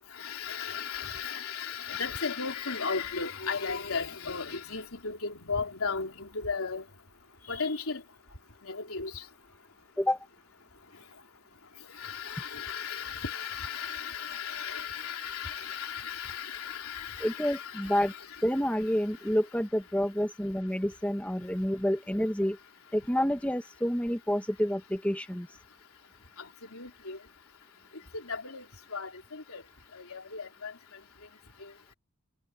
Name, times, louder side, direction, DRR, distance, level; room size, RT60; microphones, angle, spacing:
voice 1, 0.1-6.8 7.5-8.0 8.6-9.3 11.9-18.6 26.4-27.2 28.1-29.6 29.9-30.7 31.6-31.7, left 5 dB, 75° left, 3.6 m, -36 dB
voice 2, 17.2-18.1 18.4-22.6 22.9-25.5, equal, 5° left, 1.1 m, -28 dB
head